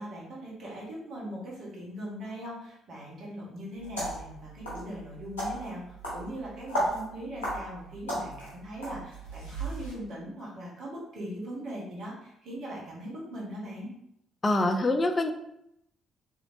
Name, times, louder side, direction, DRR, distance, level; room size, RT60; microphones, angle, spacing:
voice 1, 0.0-13.9, equal, 55° right, -5 dB, 1.1 m, -40 dB
sound 1, 3.8-9.9, right 1 dB, 85° left, 1.0 m, -35 dB
voice 2, 14.4-15.3, left 2 dB, 30° left, 6 dB, 0.4 m, -25 dB
3.0 x 2.7 x 2.6 m, 0.77 s
figure-of-eight pair, 45°, 0 cm